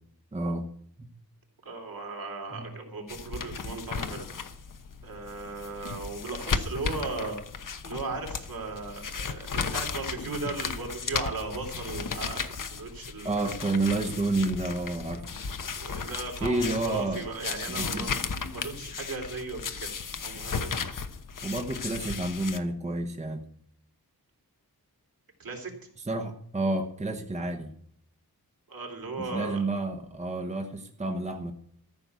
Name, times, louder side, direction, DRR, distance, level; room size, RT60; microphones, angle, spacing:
voice 1, 0.3-0.7 1.0-1.1 2.5-2.7 13.2-15.3 16.4-17.2 17.7-18.1 21.4-23.4 26.1-27.7 29.2-31.5, right 2 dB, 20° right, 4 dB, 1.0 m, -30 dB
voice 2, 1.6-4.3 5.0-7.4 7.8-13.5 15.8-19.9 20.2-20.7 25.4-25.7 28.7-29.6, right 3 dB, 65° right, 1 dB, 3.3 m, -37 dB
sound 1, 3.1-22.6, left 5 dB, 55° left, 1.0 m, -35 dB
14.5 x 5.9 x 8.1 m, 0.67 s
wide cardioid pair, 135°, 37 cm